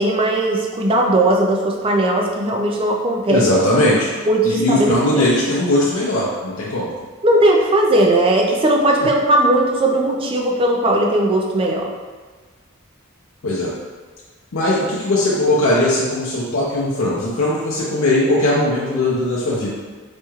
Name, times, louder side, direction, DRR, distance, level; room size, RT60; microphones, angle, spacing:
voice 1, 0.0-3.4 4.3-5.3 7.2-11.9, right 1 dB, 25° right, 0 dB, 0.4 m, -17 dB
voice 2, 3.3-4.1 4.4-6.9 9.0-9.1 13.4-13.7 14.5-19.7, left 1 dB, 70° left, -6 dB, 0.5 m, -19 dB
4.2 x 3.0 x 2.3 m, 1.4 s
head